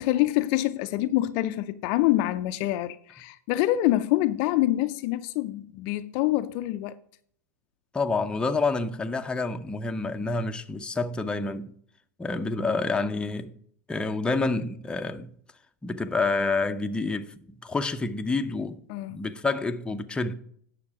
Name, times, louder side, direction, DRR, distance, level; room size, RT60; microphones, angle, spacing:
voice 1, 0.0-7.0 18.9-19.2, left 15 dB, 50° left, 0.5 m, -26 dB
voice 2, 7.9-11.7 12.2-13.5 13.9-15.3 15.8-18.8 19.1-20.3, left 3 dB, 10° left, 0.7 m, -28 dB
9.7 x 6.5 x 4.8 m
hypercardioid pair, 110°, 10 cm